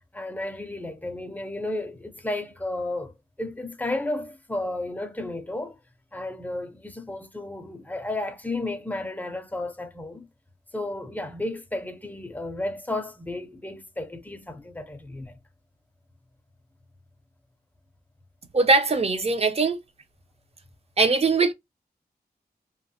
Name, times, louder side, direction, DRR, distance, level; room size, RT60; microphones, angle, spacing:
voice 1, 0.1-3.1 3.4-5.8 6.1-10.3 10.7-15.4, left 2 dB, 10° left, 0.5 m, -33 dB
voice 2, 18.5-19.8 21.0-21.5, right 3 dB, 40° right, 0.6 m, -21 dB
2.9 x 2.0 x 2.7 m
wide cardioid pair, 130°, 16 cm